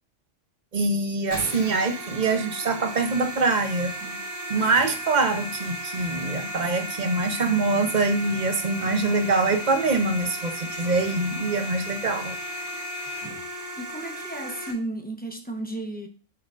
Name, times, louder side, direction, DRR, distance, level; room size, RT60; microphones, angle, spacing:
voice 1, 0.7-3.9 4.5-12.4, right 3 dB, 40° right, 0.8 m, -24 dB
sound 1, 1.3-14.7, right 1 dB, 20° right, 2.3 m, -35 dB
voice 2, 13.8-16.1, right 2 dB, 10° left, 0.7 m, -33 dB
7.8 x 5.8 x 2.5 m
omnidirectional pair, 1.3 m